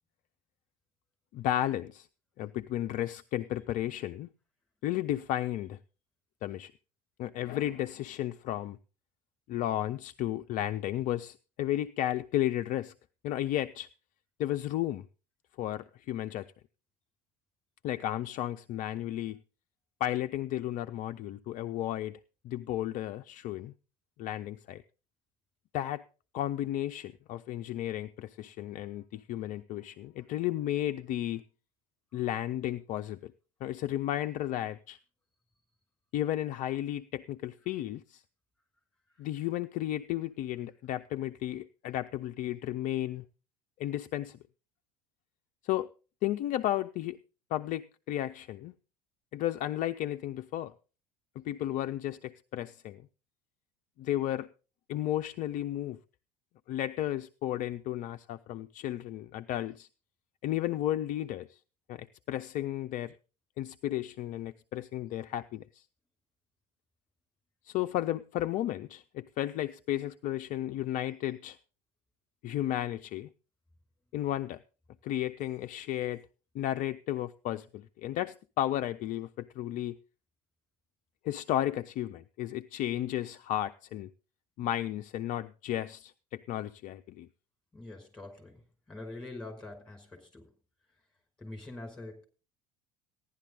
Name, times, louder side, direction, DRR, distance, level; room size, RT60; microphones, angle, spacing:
voice 1, 1.3-2.1 2.4-4.3 4.8-5.8 6.4-6.7 7.2-8.8 9.5-12.9 13.2-13.9 14.4-15.1 15.6-16.5 17.8-19.4 20.0-22.2 22.4-23.7 24.2-24.8 25.7-26.0 26.3-31.4 32.1-33.3 33.6-35.0 36.1-38.2 39.2-43.2 43.8-44.4 45.6-45.9 46.2-47.2 47.5-48.7 49.3-50.7 51.4-53.0 54.0-54.5 54.9-56.0 56.7-59.9 60.4-61.6 61.9-63.1 63.6-65.8 67.6-71.6 72.4-73.3 74.1-74.6 75.0-76.2 76.5-80.0 81.2-84.1 84.6-87.3, left 13 dB, 40° left, 0.6 m, -33 dB
voice 2, 87.7-88.6 88.9-90.4 91.4-92.2, left 2 dB, 5° left, 5.7 m, -44 dB
15.5 x 11.0 x 3.9 m
figure-of-eight pair, 70°, 20 cm